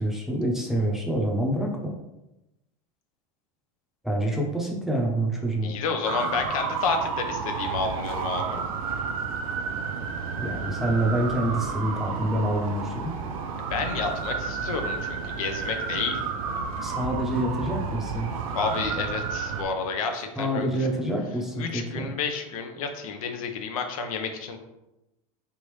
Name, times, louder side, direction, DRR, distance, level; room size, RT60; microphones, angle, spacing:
voice 1, 0.0-1.9 4.0-5.8 10.4-13.1 16.8-18.3 20.4-22.1, right 1 dB, ahead, -1 dB, 0.6 m, -27 dB
voice 2, 5.6-8.6 13.7-16.2 18.5-20.9 21.6-24.6, left 5 dB, 85° left, 5 dB, 0.8 m, -30 dB
sound 1, 6.0-19.6, right 5 dB, 90° right, 0.6 m, -31 dB
4.0 x 3.5 x 3.1 m, 0.94 s
supercardioid pair, 140°, 18 cm